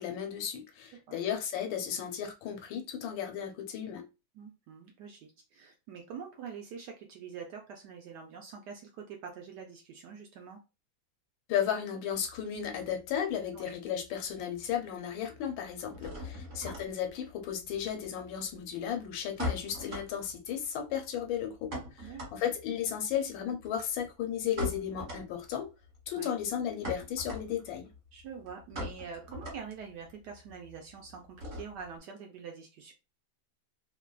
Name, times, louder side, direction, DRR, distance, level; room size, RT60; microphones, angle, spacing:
voice 1, 0.0-4.0 11.5-21.7 22.0-25.7 26.1-27.9, left 9 dB, 80° left, 1.4 m, -34 dB
voice 2, 4.3-10.6 13.5-13.7 16.3-16.6 22.0-22.5 26.2-26.3 28.1-32.9, right 6 dB, 70° right, 1.0 m, -45 dB
sound 1, 12.2-13.7 14.0-14.7 15.0-32.0, left 1 dB, 45° right, 1.4 m, -42 dB
3.1 x 2.2 x 2.2 m
omnidirectional pair, 2.1 m